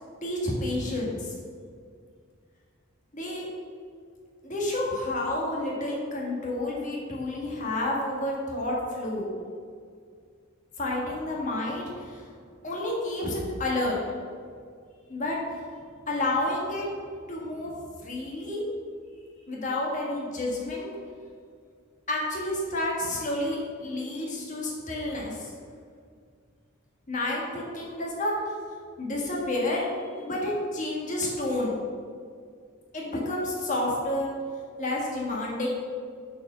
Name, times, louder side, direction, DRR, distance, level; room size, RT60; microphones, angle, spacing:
voice 1, 0.2-1.3 3.1-3.5 4.4-9.3 10.8-12.2 12.6-14.0 15.1-15.4 16.1-16.9 17.3-17.7 18.0-18.7 19.5-20.9 22.1-25.5 27.1-28.3 29.0-29.9 30.1-31.8 32.9-34.3 34.8-35.7, left 1 dB, 35° left, -3 dB, 1.4 m, -30 dB
6.1 x 4.6 x 6.1 m, 2.1 s
head